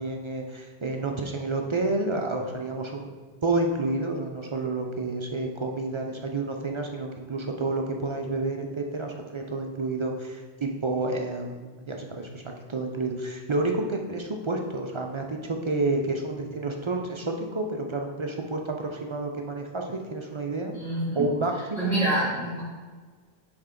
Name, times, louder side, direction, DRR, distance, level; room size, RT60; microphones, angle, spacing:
voice 1, 0.0-3.1 3.4-20.7 21.1-21.9, right 2 dB, 45° right, 2 dB, 0.4 m, -30 dB
voice 2, 20.7-21.3 21.8-22.6, right 2 dB, 5° right, -11 dB, 1.8 m, -26 dB
5.7 x 3.5 x 5.0 m, 1.4 s
omnidirectional pair, 1.1 m